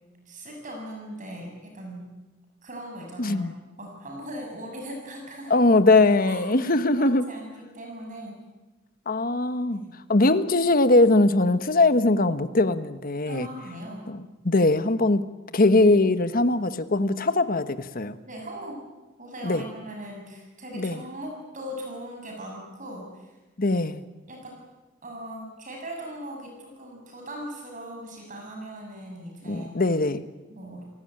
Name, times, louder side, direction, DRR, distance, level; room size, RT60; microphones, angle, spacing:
voice 1, 0.2-2.1 2.6-3.5 3.8-5.5 6.3-6.5 7.0-8.4 9.7-9.9 13.3-14.0 18.2-18.8 19.2-23.4 24.3-24.6 25.0-29.7 30.5-30.9, equal, 45° right, 1 dB, 6.5 m, -39 dB
voice 2, 3.2-3.5 5.5-7.2 9.1-9.8 10.1-13.5 14.1-15.2 15.5-18.2 19.4-19.6 20.7-21.0 23.6-24.0 29.4-30.2, left 2 dB, 50° left, 11 dB, 1.3 m, -21 dB
30.0 x 18.5 x 8.9 m, 1.1 s
head